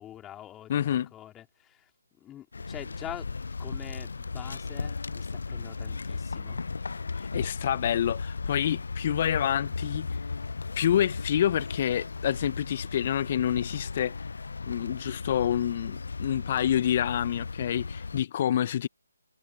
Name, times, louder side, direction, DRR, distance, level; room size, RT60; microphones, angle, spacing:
voice 1, 0.0-1.9 2.2-6.6, left 12 dB, 10° left, 4.1 m, -45 dB
voice 2, 0.7-1.1 7.2-10.2 10.8-14.2 14.7-18.9, left 10 dB, 35° left, 1.0 m, -28 dB
sound 1, 2.5-18.2, left 4 dB, 60° left, 0.5 m, -36 dB
figure-of-eight pair, 145°, 0 cm